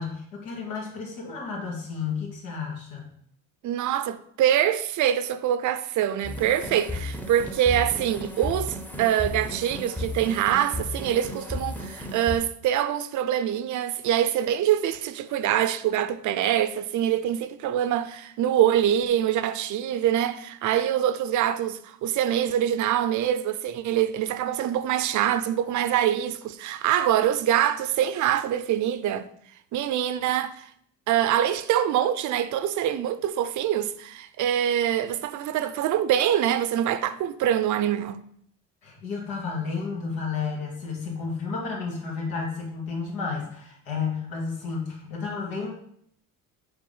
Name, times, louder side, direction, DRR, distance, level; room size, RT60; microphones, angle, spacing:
voice 1, 0.0-3.1 38.8-45.7, left 5 dB, 85° left, 2.5 m, -32 dB
voice 2, 3.6-29.3 29.7-30.7 31.1-38.2, right 10 dB, 60° right, 0.6 m, -24 dB
sound 1, 6.2-12.4, left 1 dB, 5° left, 0.8 m, -34 dB
6.8 x 3.6 x 5.5 m
cardioid pair, 110°, 34 cm